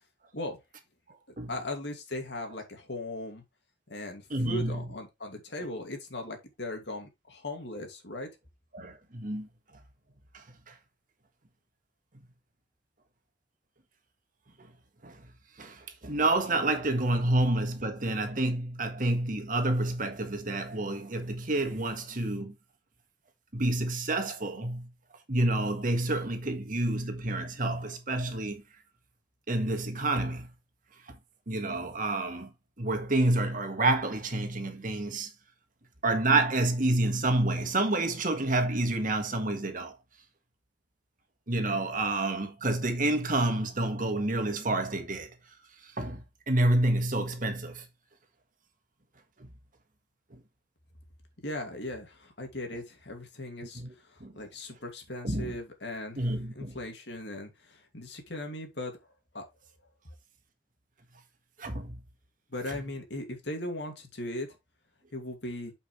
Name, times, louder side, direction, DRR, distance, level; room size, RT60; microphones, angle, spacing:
voice 1, 1.5-3.4 3.9-8.3 51.4-53.8 54.1-58.9 59.3-59.5 62.5-64.5 65.1-65.7, left 1 dB, 65° left, 2.5 m, -38 dB
voice 2, 4.3-4.9 8.7-9.5 10.7-10.8 15.0-15.2 15.6-22.5 23.5-24.9 25.3-28.6 29.5-30.5 31.5-32.5 32.8-35.3 36.0-39.9 41.5-45.3 46.0-47.8 49.4-49.5 53.7-53.9 54.2-54.3 55.2-55.6 56.2-56.8 61.6-61.9 62.7-62.8, right 2 dB, 45° right, 1.6 m, -28 dB
8.5 x 5.5 x 3.3 m
head